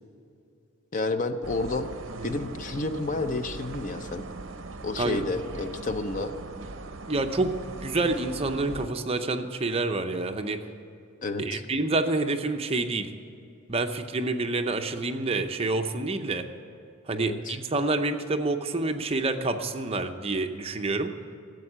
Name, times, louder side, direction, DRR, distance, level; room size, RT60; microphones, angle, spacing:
voice 1, 0.9-1.9 2.2-4.3 4.8-6.3 11.2-11.6 17.1-17.6, left 2 dB, 40° left, 9 dB, 0.6 m, -30 dB
sound 1, 1.4-8.9, right 3 dB, 65° right, 0.7 m, -40 dB
voice 2, 7.1-10.6 11.4-13.1 13.7-16.4 17.1-21.1, right 2 dB, 30° right, 6 dB, 0.7 m, -28 dB
12.5 x 8.1 x 8.7 m, 2.6 s
head